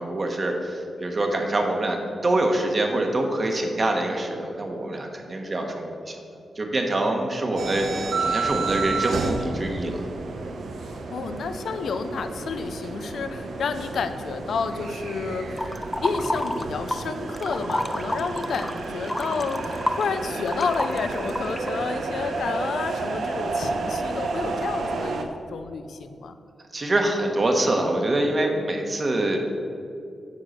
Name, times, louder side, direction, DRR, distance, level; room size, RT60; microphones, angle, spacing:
voice 1, 0.0-6.2 6.5-10.0 26.7-29.4, right 1 dB, 35° right, 2 dB, 1.4 m, -25 dB
sound 1, 7.6-25.2, right 3 dB, 75° right, 0.9 m, -31 dB
voice 2, 10.8-15.6 16.0-26.4, left 5 dB, 75° left, 9 dB, 0.7 m, -30 dB
sound 2, 15.6-17.1 17.3-21.8, left 1 dB, 15° left, 0.6 m, -29 dB
9.5 x 6.5 x 6.6 m, 2.5 s
wide cardioid pair, 100°, 0 cm